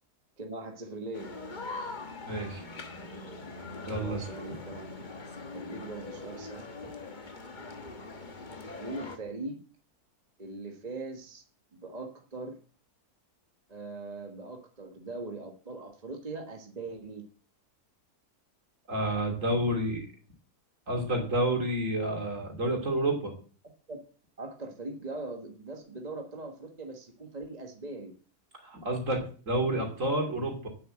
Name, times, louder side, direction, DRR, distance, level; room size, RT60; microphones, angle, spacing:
voice 1, 0.4-1.3 3.9-5.0 5.5-6.8 8.8-9.6 10.4-11.4 11.7-12.6 13.7-17.2 23.9-24.0 24.4-28.2, right 2 dB, 25° right, 3 dB, 1.4 m, -40 dB
sound 1, 1.1-9.2, left 3 dB, 30° left, 1.3 m, -42 dB
voice 2, 2.3-2.6 3.9-4.2 18.9-20.1 20.9-23.4 28.6-30.7, right 1 dB, 55° right, 2 dB, 3.4 m, -29 dB
9.5 x 7.7 x 7.6 m, 0.41 s
omnidirectional pair, 1.7 m